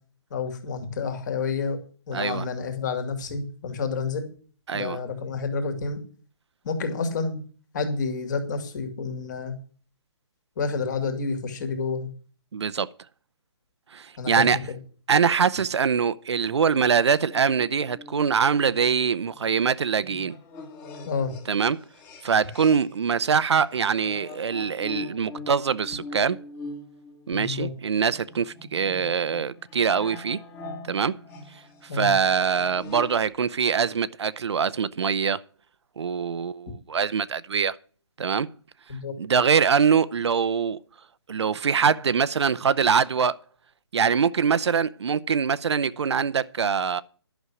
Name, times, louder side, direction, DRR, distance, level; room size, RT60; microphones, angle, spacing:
voice 1, 0.3-4.3 4.7-6.0 6.6-7.4 7.7-9.6 10.6-12.1 14.2-14.8 21.1-21.4 27.3-27.7 31.9-32.1 38.9-39.2, left 4 dB, 40° left, 2.5 m, -29 dB
voice 2, 2.1-2.4 4.7-5.0 12.5-12.9 13.9-14.6 15.1-20.4 21.5-21.8 22.2-26.4 27.3-30.4 30.8-31.2 31.9-35.4 36.0-37.8 38.2-38.5 39.2-40.8 41.3-43.4 43.9-47.0, right 6 dB, 75° right, 0.7 m, -23 dB
sound 1, 17.3-23.0 23.3-33.3, left 3 dB, 15° left, 1.6 m, -43 dB
11.5 x 6.3 x 8.3 m
hypercardioid pair, 165°, 14 cm